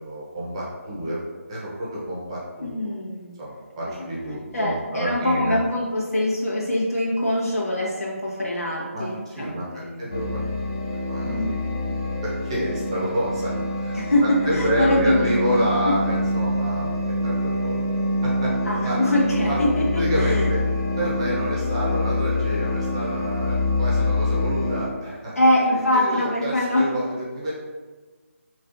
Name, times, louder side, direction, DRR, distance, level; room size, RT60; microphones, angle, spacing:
voice 1, 0.0-2.9 3.4-5.6 8.9-10.6 11.0-11.9 12.2-13.5 13.8-16.9 17.2-17.8 18.2-18.5 18.8-19.0 19.5-19.6 20.0-20.6 21.0-27.5, equal, 20° right, -6 dB, 0.8 m, -29 dB
voice 2, 2.6-3.3 3.9-4.0 4.5-10.0 11.3-11.7 13.9-15.6 15.9-16.0 18.6-20.5 25.3-27.0, left 1 dB, 85° left, -4 dB, 1.5 m, -23 dB
sound 1, 10.1-24.9, left 1 dB, 25° left, 0.4 m, -25 dB
5.4 x 3.1 x 2.6 m, 1.4 s
figure-of-eight pair, 170°, 8 cm